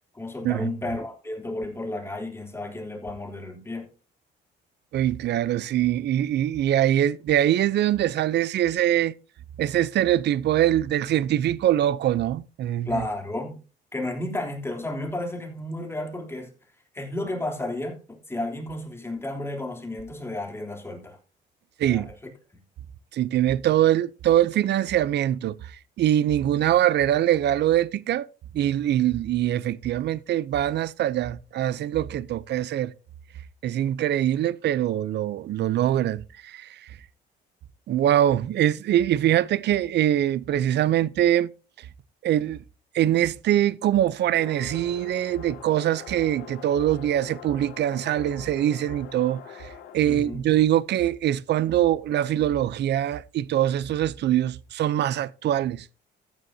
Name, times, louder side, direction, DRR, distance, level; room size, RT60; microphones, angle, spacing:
voice 1, 0.1-3.9 12.8-13.6 13.9-16.5 16.9-21.2 21.8-22.1 50.0-50.4, left 2 dB, 15° left, 3.4 m, -32 dB
voice 2, 4.9-9.1 9.6-13.0 21.8-22.1 23.1-25.5 26.0-28.3 28.5-32.9 33.6-36.7 37.9-41.5 42.2-42.6 42.9-49.7 49.9-55.8, right 12 dB, 65° right, 0.6 m, -23 dB
sound 1, 44.4-50.0, left 8 dB, 80° left, 2.1 m, -43 dB
14.5 x 9.4 x 2.8 m
cardioid pair, 95°, 19 cm